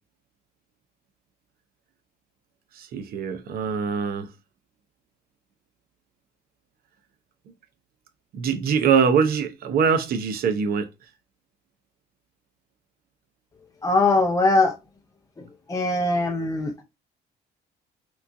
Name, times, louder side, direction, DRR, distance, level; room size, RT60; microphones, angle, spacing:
voice 1, 2.8-4.3 8.3-10.9, right 6 dB, 60° right, 0.7 m, -23 dB
voice 2, 13.8-14.7 15.7-16.8, left 2 dB, 20° left, 0.5 m, -21 dB
3.5 x 3.1 x 2.3 m
cardioid pair, 110°, 17 cm